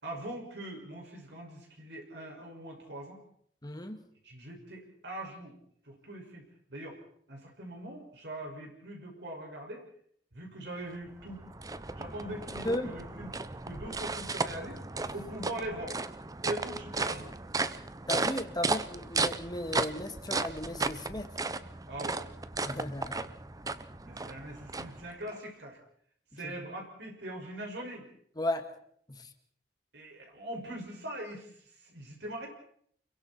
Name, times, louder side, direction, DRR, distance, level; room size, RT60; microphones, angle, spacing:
voice 1, 0.0-3.2 4.2-5.6 5.8-6.4 6.7-7.0 7.3-9.8 10.3-11.4 12.0-13.3 13.6-14.8 15.1-16.0 16.4-17.3 21.9-22.3 24.0-25.8 26.3-28.1 29.9-32.5, right 1 dB, 75° right, 0 dB, 6.0 m, -41 dB
voice 2, 3.6-4.0 12.6-12.9 18.1-21.3 22.7-23.2 26.4-26.5 28.4-28.8 29.2-29.3, left 1 dB, 25° left, 5 dB, 2.1 m, -35 dB
sound 1, 10.9-25.4, right 3 dB, 20° right, 0.8 m, -35 dB
29.5 x 22.5 x 4.4 m, 0.63 s
head